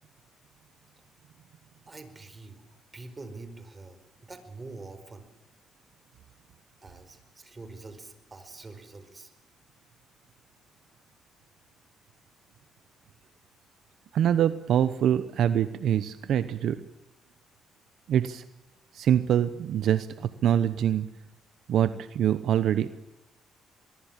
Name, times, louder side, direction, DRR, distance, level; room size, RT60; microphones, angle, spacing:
voice 1, 1.9-5.3 6.8-9.3, right 3 dB, 25° right, 10 dB, 4.9 m, -45 dB
voice 2, 14.1-16.8 18.1-18.4 18.9-21.1 21.7-22.9, right 10 dB, 70° right, 13 dB, 0.9 m, -24 dB
23.0 x 22.0 x 7.4 m, 1.0 s
cardioid pair, 90°, 0 cm